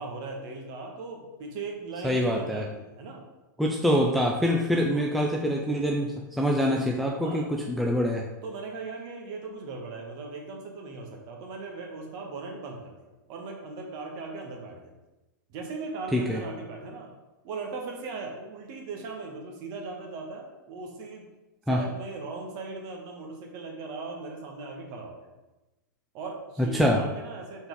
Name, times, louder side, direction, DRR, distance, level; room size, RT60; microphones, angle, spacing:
voice 1, 0.0-3.2 4.9-5.2 7.2-7.5 8.4-14.9 15.5-17.1 17.4-21.3 21.7-25.3 26.1-27.7, right 3 dB, 40° right, 1 dB, 1.4 m, -38 dB
voice 2, 2.0-2.6 3.6-8.3 16.1-16.4 21.7-21.8 26.7-27.0, equal, ahead, -1 dB, 0.4 m, -25 dB
4.3 x 4.3 x 5.3 m, 1.1 s
hypercardioid pair, 135°, 11 cm